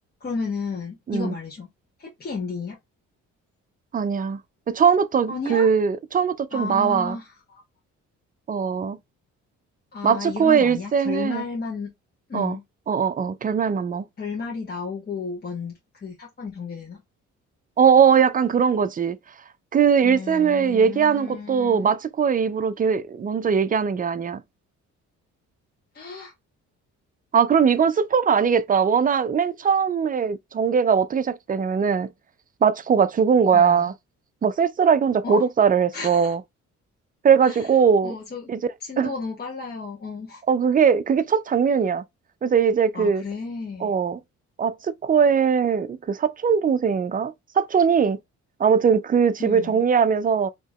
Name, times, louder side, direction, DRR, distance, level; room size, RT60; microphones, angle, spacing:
voice 1, 0.2-1.7 2.0-2.8 5.3-5.7 6.5-7.6 9.9-11.9 12.3-12.6 14.2-17.0 20.0-21.9 25.9-26.3 33.5-33.9 35.2-35.4 35.9-36.3 37.4-37.7 38.0-38.5 38.8-40.4 42.9-43.9 49.4-49.8, left 4 dB, 35° left, 1.2 m, -33 dB
voice 2, 3.9-4.4 4.7-7.2 8.5-9.0 10.0-11.4 12.3-12.6 12.9-14.0 17.8-19.2 19.7-24.4 27.3-32.1 32.6-33.9 34.4-36.4 37.2-38.2 38.5-38.6 39.0-39.1 40.5-42.0 42.4-43.2 43.8-44.2 44.6-48.2 48.6-50.5, right 6 dB, 30° right, 0.4 m, -20 dB
4.6 x 2.9 x 2.3 m
cardioid pair, 90°, 30 cm